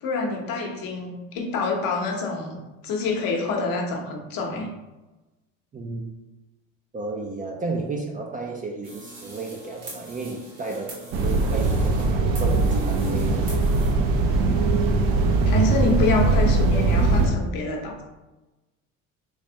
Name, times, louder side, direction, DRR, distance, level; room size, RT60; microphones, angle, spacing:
voice 1, 0.0-4.7 15.5-18.0, left 3 dB, 60° left, 2 dB, 0.9 m, -27 dB
voice 2, 5.7-6.1 6.9-12.1 12.4-13.6, right 3 dB, 20° right, 1 dB, 0.4 m, -33 dB
sound 1, 8.8-13.9, right 2 dB, 85° right, 1.4 m, -43 dB
sound 2, 11.1-17.3, right 3 dB, 60° right, 0.6 m, -21 dB
3.2 x 3.2 x 2.8 m, 1.1 s
hypercardioid pair, 75°, 38 cm